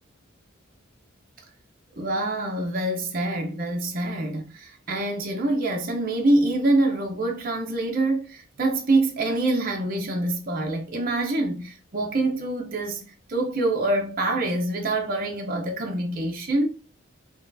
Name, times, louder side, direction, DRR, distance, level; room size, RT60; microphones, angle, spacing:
voice 1, 2.0-16.7, right 2 dB, 45° right, 0.6 m, -25 dB
5.9 x 2.3 x 2.6 m
head